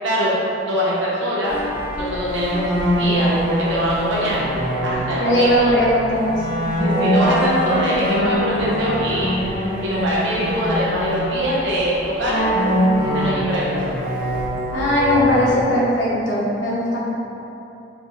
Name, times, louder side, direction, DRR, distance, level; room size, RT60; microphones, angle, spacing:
voice 1, 0.0-0.3 0.6-1.5 2.0-2.7 3.0-4.4 4.8-5.8 6.8-9.3 9.8-12.5 13.1-13.8, equal, 85° right, -6 dB, 1.0 m, -23 dB
sound 1, 1.5-15.5, equal, 50° left, 1.2 m, -23 dB
voice 2, 5.0-6.6 14.7-17.0, equal, 75° left, -7 dB, 1.1 m, -19 dB
4.7 x 3.4 x 2.8 m, 2.9 s
head